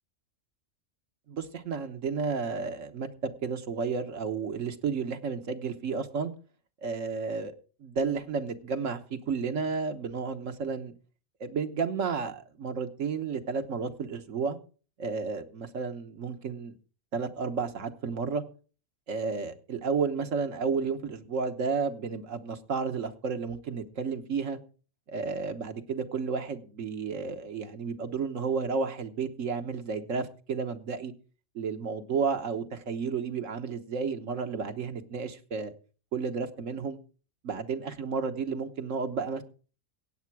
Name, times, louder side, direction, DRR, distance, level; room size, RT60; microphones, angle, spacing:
voice 1, 1.3-6.3 6.8-7.5 7.8-10.9 11.4-14.6 15.0-16.7 17.1-18.4 19.1-24.6 25.1-31.1 31.5-35.7 36.1-37.0 37.4-39.4, right 5 dB, 80° right, 6 dB, 1.6 m, -32 dB
16.0 x 8.6 x 4.7 m, 0.39 s
omnidirectional pair, 1.3 m